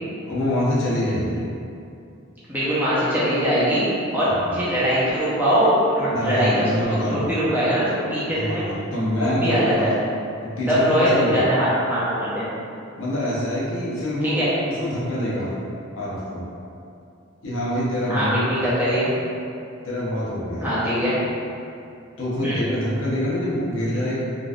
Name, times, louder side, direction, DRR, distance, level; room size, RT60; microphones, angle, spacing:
voice 1, 0.3-1.4 4.3-4.6 6.1-7.4 8.3-10.0 10.4-11.5 13.0-14.4 14.7-15.5 15.9-16.4 17.4-18.7 19.8-20.7 22.2-24.2, equal, 65° left, -7 dB, 0.8 m, -25 dB
voice 2, 2.5-3.9 4.1-6.7 7.0-8.6 9.2-9.9 10.7-12.4 14.2-14.5 18.1-19.1 20.6-21.2 22.4-22.6, equal, 10° right, -11 dB, 0.7 m, -21 dB
3.8 x 2.5 x 2.4 m, 2.6 s
head